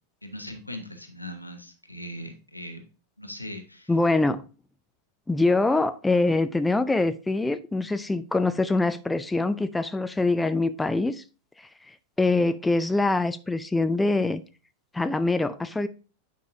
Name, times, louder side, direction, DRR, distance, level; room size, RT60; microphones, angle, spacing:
voice 1, 0.2-2.8 3.2-3.9, equal, 90° left, 1.1 m, -39 dB
voice 2, 3.9-4.5 5.3-11.2 11.6-14.4 14.9-15.9, left 2 dB, 10° left, 0.4 m, -24 dB
9.3 x 5.3 x 2.6 m
figure-of-eight pair, 90°, 0 cm